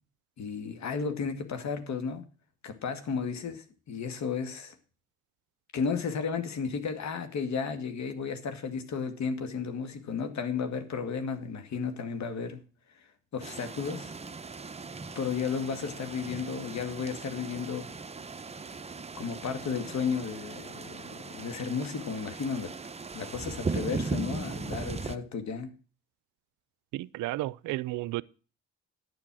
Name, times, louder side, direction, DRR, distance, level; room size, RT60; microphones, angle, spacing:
voice 1, 0.4-2.2 2.6-4.7 5.7-12.6 13.3-14.1 15.2-17.9 19.1-22.7 23.1-25.7, left 5 dB, 65° left, 2.1 m, -33 dB
sound 1, 13.4-25.2, right 4 dB, 20° right, 0.8 m, -38 dB
voice 2, 26.9-28.2, right 18 dB, 85° right, 0.5 m, -32 dB
11.0 x 7.5 x 6.1 m
cardioid pair, 90°, 30 cm